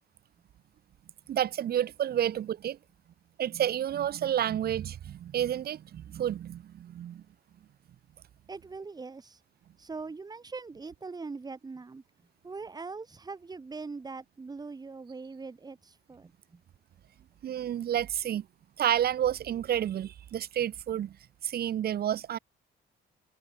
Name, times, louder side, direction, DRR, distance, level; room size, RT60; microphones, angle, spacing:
voice 1, 1.3-2.8 3.4-7.2 17.4-18.5 18.8-21.2 21.4-22.4, right 10 dB, 50° right, 0.5 m, -30 dB
voice 2, 8.5-9.4 9.8-12.0 12.4-16.6, right 4 dB, 20° right, 0.8 m, -42 dB
cardioid pair, 90°, 20 cm